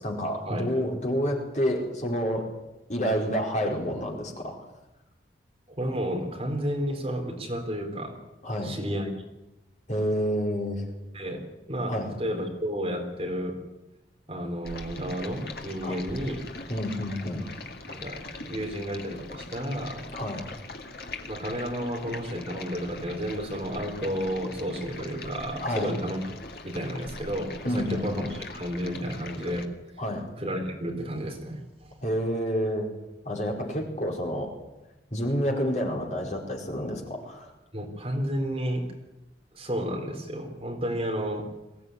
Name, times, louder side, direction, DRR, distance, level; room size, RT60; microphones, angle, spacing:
voice 1, 0.0-2.5 2.9-4.6 8.4-8.7 9.9-10.8 11.9-12.1 15.8-16.0 16.7-17.4 20.1-20.5 25.6-26.0 27.6-28.3 30.0-30.3 32.0-32.9 33.2-34.5 35.1-37.5, equal, 40° left, 0 dB, 4.7 m, -29 dB
voice 2, 5.7-8.2 8.6-9.1 11.1-13.6 14.3-16.4 17.9-20.1 21.3-26.2 26.6-29.7 30.4-32.0 37.7-38.9 39.5-41.5, equal, 30° right, 2 dB, 4.0 m, -32 dB
Stream, 14.6-29.6, left 3 dB, 55° left, 2.1 m, -42 dB
22.5 x 17.0 x 9.6 m, 0.97 s
head